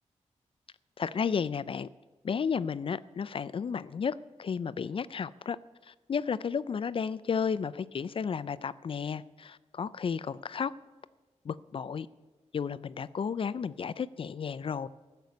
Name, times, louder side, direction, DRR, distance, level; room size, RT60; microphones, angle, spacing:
voice 1, 1.0-1.9 2.2-5.6 5.9-10.7 11.5-12.1 12.5-14.9, left 6 dB, 50° left, 17 dB, 0.4 m, -33 dB
14.0 x 6.8 x 8.2 m, 1.3 s
wide cardioid pair, 120°, 12 cm